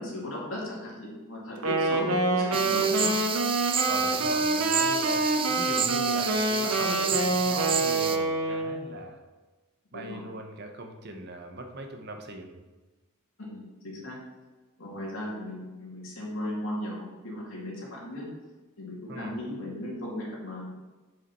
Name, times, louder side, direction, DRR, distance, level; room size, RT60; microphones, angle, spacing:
voice 1, 0.0-3.1 7.1-7.2 9.9-10.2 13.4-14.2 14.8-18.3 18.8-20.7, left 1 dB, 70° left, -4 dB, 2.5 m, -36 dB
Wind instrument woodwind instrument, 1.6-8.8, right 2 dB, 85° right, 1.1 m, -26 dB
sound 1, 2.5-8.2, right 8 dB, 25° right, 0.3 m, -31 dB
voice 2, 3.8-9.2 9.9-12.6 19.1-19.3, right 2 dB, 50° right, 4 dB, 0.8 m, -39 dB
7.6 x 5.2 x 4.3 m, 1.2 s
head